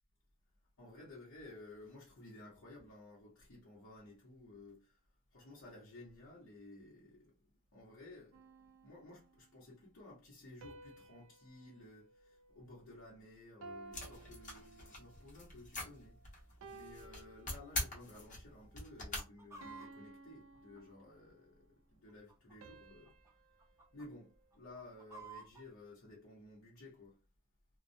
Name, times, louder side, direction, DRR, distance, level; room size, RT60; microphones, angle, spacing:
voice 1, 0.8-5.0 5.3-7.4 7.7-16.2 16.7-23.2 23.9-27.2, left 2 dB, 85° left, 0.9 m, -55 dB
sound 1, 8.3-9.6 10.6-13.1 13.6-15.3 15.9-16.1 16.6-18.1 18.6-18.9 19.6-21.5 22.6-25.0, right 3 dB, 90° right, 0.4 m, -57 dB
sound 2, 13.9-19.2, left 2 dB, 40° left, 1.0 m, -44 dB
Chicken rooster, 17.7-18.2 18.5-18.6 19.0-21.3 22.0-22.8 23.1-23.3 23.6-24.1 24.5-25.7, right 3 dB, 15° right, 0.5 m, -54 dB
2.3 x 2.1 x 2.6 m
head